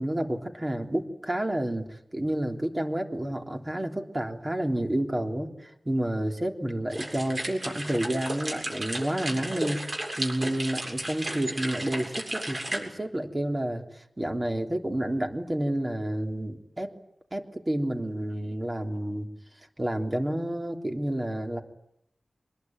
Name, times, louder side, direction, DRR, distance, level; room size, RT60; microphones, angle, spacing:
voice 1, 0.0-9.8 10.2-16.9 17.3-19.3 19.8-21.6, right 1 dB, 25° right, 3 dB, 3.4 m, -30 dB
sound 1, 6.9-12.8, right 1 dB, 45° right, 7.6 m, -34 dB
25.5 x 21.0 x 9.5 m, 0.77 s
wide cardioid pair, 75°, 0 cm